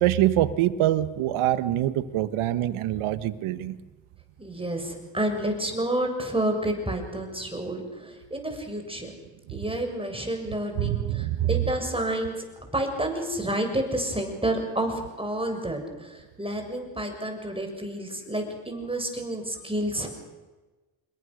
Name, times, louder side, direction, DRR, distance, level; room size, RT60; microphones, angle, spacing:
voice 1, 0.0-3.8 9.5-9.6 10.7-11.7, right 13 dB, 80° right, 14 dB, 1.4 m, -25 dB
voice 2, 4.4-7.8 8.3-9.1 9.5-12.4 12.7-20.1, right 1 dB, 10° right, 4 dB, 6.9 m, -29 dB
27.0 x 22.0 x 6.5 m, 1.2 s
supercardioid pair, 65°, 49 cm